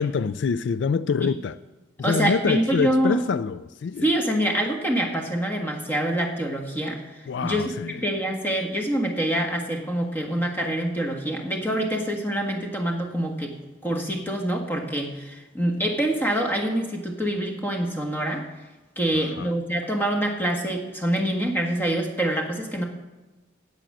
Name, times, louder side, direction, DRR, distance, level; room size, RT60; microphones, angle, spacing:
voice 1, 0.0-1.6 2.0-4.1 7.3-8.1 19.1-19.5, left 5 dB, 70° left, 0.3 m, -26 dB
voice 2, 2.0-3.2 4.0-7.0 7.4-7.6 8.0-13.5 13.8-18.4 19.0-22.8, right 1 dB, 10° left, 1.5 m, -25 dB
9.1 x 8.6 x 7.7 m
head